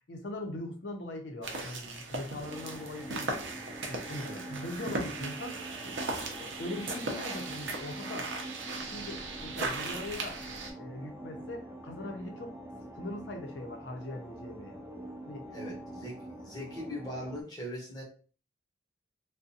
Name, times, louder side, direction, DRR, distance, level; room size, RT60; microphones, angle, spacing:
voice 1, 0.0-3.6 3.9-5.6 5.8-6.0 6.4-8.3 8.7-10.4 10.8-12.6 12.9-14.8 15.3-15.5, left 1 dB, 70° left, 3 dB, 0.6 m, -41 dB
sound 1, 1.4-10.7, right 3 dB, 75° right, 0.6 m, -38 dB
sound 2, 2.5-17.4, right 1 dB, 15° right, 0.3 m, -45 dB
voice 2, 15.5-18.0, equal, 20° left, -3 dB, 0.8 m, -41 dB
2.5 x 2.2 x 2.6 m, 0.38 s
head